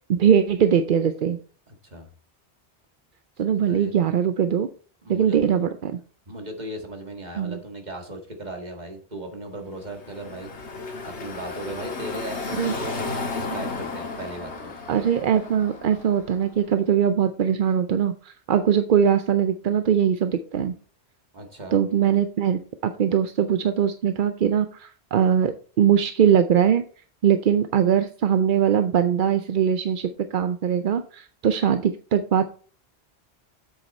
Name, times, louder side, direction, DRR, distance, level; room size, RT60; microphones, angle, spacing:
voice 1, 0.1-1.4 3.4-4.7 5.1-6.0 7.4-7.6 12.5-12.7 14.9-20.7 21.7-26.8 27.2-32.5, right 8 dB, 55° right, 9 dB, 0.7 m, -21 dB
voice 2, 1.7-2.1 3.7-3.9 5.0-5.4 6.3-10.5 11.0-14.7 21.3-21.8, right 1 dB, 40° right, 3 dB, 2.0 m, -37 dB
Car passing by / Traffic noise roadway noise, 9.7-16.7, left 3 dB, 75° left, 1.8 m, -34 dB
7.9 x 7.6 x 4.2 m, 0.41 s
omnidirectional pair, 1.2 m